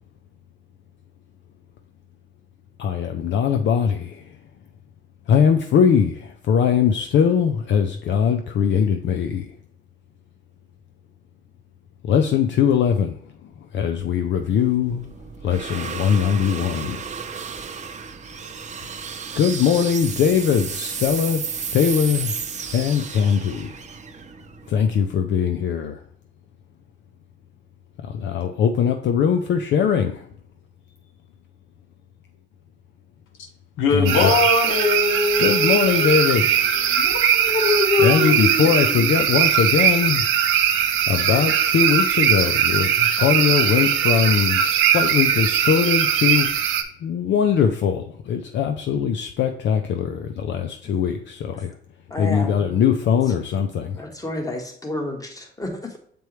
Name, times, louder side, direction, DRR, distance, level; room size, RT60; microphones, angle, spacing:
voice 1, 2.8-4.4 5.3-9.5 12.0-15.1 15.4-17.0 19.4-21.4 21.7-22.4 22.7-23.9 24.7-26.0 28.0-30.3 33.9-34.4 35.4-36.5 38.0-40.2 41.1-46.6 47.0-51.8 52.2-54.1, left 7 dB, 65° left, 6 dB, 0.6 m, -21 dB
sound 1, 14.0-25.2, right 6 dB, 35° right, 0.7 m, -33 dB
voice 2, 33.8-39.1, left 3 dB, 85° left, 4 dB, 1.1 m, -23 dB
sound 2, 34.1-46.8, right 9 dB, 85° right, 0.8 m, -20 dB
voice 3, 52.1-52.5 54.0-56.0, left 1 dB, 20° left, 3 dB, 1.5 m, -30 dB
6.9 x 4.5 x 3.2 m, 0.62 s
cardioid pair, 90°, 20 cm